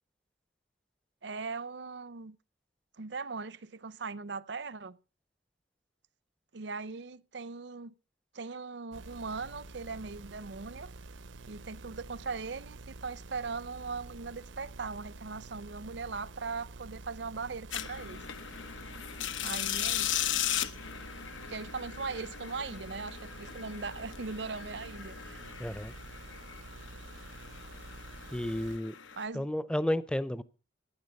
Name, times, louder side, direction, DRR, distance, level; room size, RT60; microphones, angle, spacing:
voice 1, 1.2-2.4 3.0-5.0 6.5-7.9 8.3-10.9 11.5-18.2 19.4-20.2 21.5-25.4 29.2-29.5, right 4 dB, 65° right, 0.7 m, -39 dB
sound 1, 8.9-28.8, right 2 dB, 85° right, 0.8 m, -48 dB
sound 2, 17.7-29.2, left 10 dB, 85° left, 1.0 m, -38 dB
voice 2, 25.6-25.9 28.3-28.9 29.3-30.4, left 1 dB, 5° left, 0.6 m, -32 dB
15.5 x 10.5 x 5.3 m
head